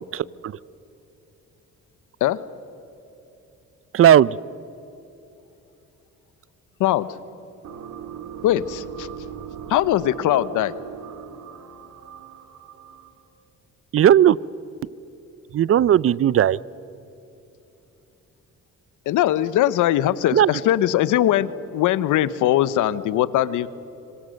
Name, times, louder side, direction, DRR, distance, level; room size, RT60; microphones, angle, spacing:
voice 1, 0.1-0.6 3.9-4.4 13.9-14.4 15.5-16.6 20.3-20.5, right 10 dB, 50° right, 22 dB, 0.6 m, -16 dB
voice 2, 6.8-7.1 8.4-9.1 9.7-10.7 19.1-23.7, left 13 dB, 85° left, 16 dB, 1.0 m, -21 dB
sound 1, 7.6-13.3, right 9 dB, 75° right, 2.3 m, -39 dB
26.0 x 25.0 x 6.5 m, 2.9 s
cardioid pair, 90°, 30 cm